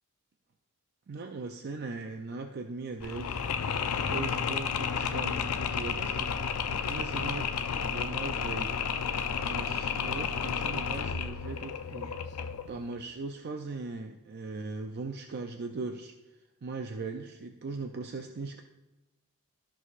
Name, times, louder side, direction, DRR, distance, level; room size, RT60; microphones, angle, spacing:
voice 1, 1.1-3.4 4.1-8.8 9.4-12.2 12.7-16.1 16.6-18.6, right 3 dB, 45° right, 5 dB, 0.5 m, -39 dB
Mechanisms, 3.0-12.8, left 6 dB, 80° left, 0.5 m, -32 dB
13.5 x 6.3 x 2.5 m, 1.0 s
head